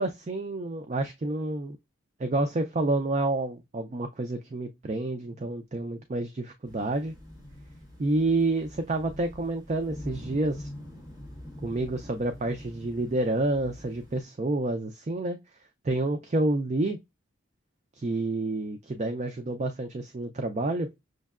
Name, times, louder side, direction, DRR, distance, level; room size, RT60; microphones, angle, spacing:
voice 1, 0.0-1.8 2.2-7.1 8.0-10.7 11.6-15.4 15.8-17.0 18.0-20.9, right 2 dB, 35° right, 0.4 m, -29 dB
sound 1, 6.6-14.2, left 1 dB, 15° right, 1.0 m, -45 dB
6.3 x 2.1 x 2.3 m
head